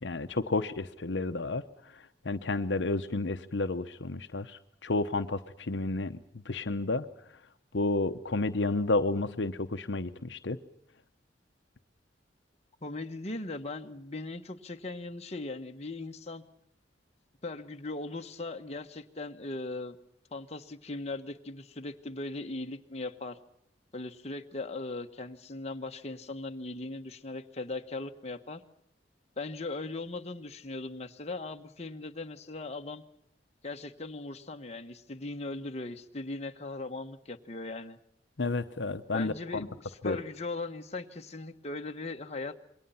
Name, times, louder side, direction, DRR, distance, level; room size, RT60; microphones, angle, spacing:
voice 1, 0.0-6.2 6.4-7.1 7.7-10.6 38.4-39.7 40.0-40.2, left 2 dB, 75° left, 9 dB, 0.9 m, -31 dB
voice 2, 12.8-16.4 17.4-20.0 20.3-23.4 23.9-28.6 29.4-33.0 33.6-38.0 39.1-42.6, left 2 dB, 35° left, 4 dB, 1.4 m, -39 dB
27.5 x 23.0 x 5.7 m, 0.71 s
head